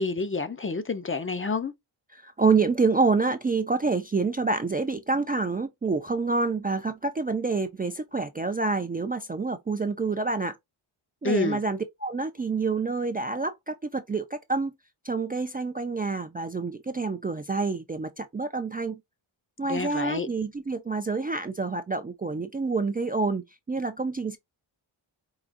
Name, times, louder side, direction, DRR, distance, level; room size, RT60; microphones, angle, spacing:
voice 1, 0.0-1.7 11.2-11.6 19.7-20.3, left 3 dB, 25° left, 0.6 m, -28 dB
voice 2, 2.1-10.5 11.2-14.7 15.0-19.0 19.6-24.4, right 4 dB, 20° right, 0.4 m, -27 dB
4.7 x 2.4 x 2.5 m
cardioid pair, 80°, 49 cm